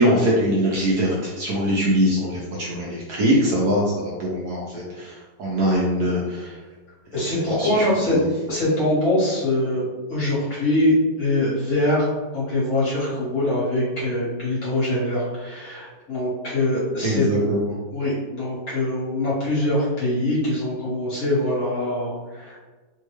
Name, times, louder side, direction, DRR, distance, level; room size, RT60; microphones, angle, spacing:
voice 1, 0.0-6.6 7.2-8.2 17.0-17.8, equal, 70° right, -4 dB, 1.0 m, -22 dB
voice 2, 7.1-8.2 8.5-12.1 12.3-17.2 17.9-22.6, left 1 dB, 50° left, -9 dB, 1.6 m, -23 dB
3.4 x 2.3 x 3.1 m, 1.3 s
omnidirectional pair, 2.1 m